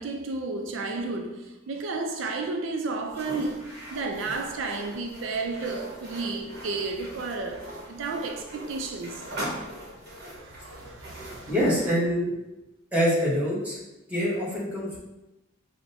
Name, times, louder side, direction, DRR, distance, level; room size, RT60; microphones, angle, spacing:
voice 1, 0.0-9.3 10.2-11.5, right 3 dB, 80° right, 0.4 m, -32 dB
sound 1, 3.1-11.9, right 1 dB, 55° right, 1.1 m, -41 dB
voice 2, 11.5-12.3 12.9-13.8 14.1-15.0, equal, 10° right, 1.0 m, -25 dB
5.8 x 2.1 x 2.6 m
head